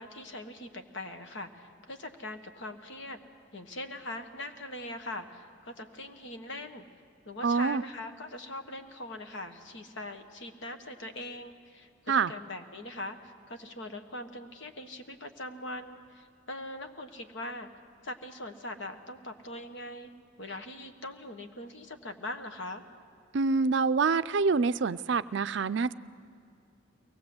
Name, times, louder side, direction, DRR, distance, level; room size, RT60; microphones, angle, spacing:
voice 1, 0.0-3.2 3.5-6.9 7.2-17.7 18.0-20.1 20.4-22.8, left 1 dB, 60° left, 6 dB, 1.4 m, -41 dB
voice 2, 7.4-7.8 12.1-12.3 23.3-25.9, right 4 dB, 60° right, 14 dB, 0.4 m, -26 dB
23.0 x 18.5 x 7.8 m, 2.5 s
head